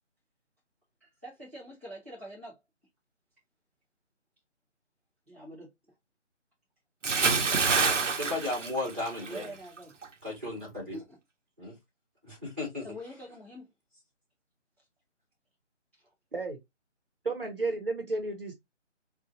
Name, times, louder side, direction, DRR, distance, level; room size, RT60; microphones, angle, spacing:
voice 1, 1.0-2.6 5.3-5.7 9.3-10.0 10.9-11.2 12.8-13.7 16.0-16.1, equal, 10° left, 0.9 m, -45 dB
Bathtub (filling or washing) / Splash splatter, 7.0-9.5 9.8-10.1, right 4 dB, 75° right, 0.8 m, -27 dB
voice 2, 8.2-9.5 10.2-11.0 11.6-11.7 12.2-12.9, left 2 dB, 10° right, 1.3 m, -35 dB
voice 3, 17.2-18.5, right 3 dB, 50° right, 0.9 m, -32 dB
3.9 x 2.4 x 2.7 m
figure-of-eight pair, 175°, 36 cm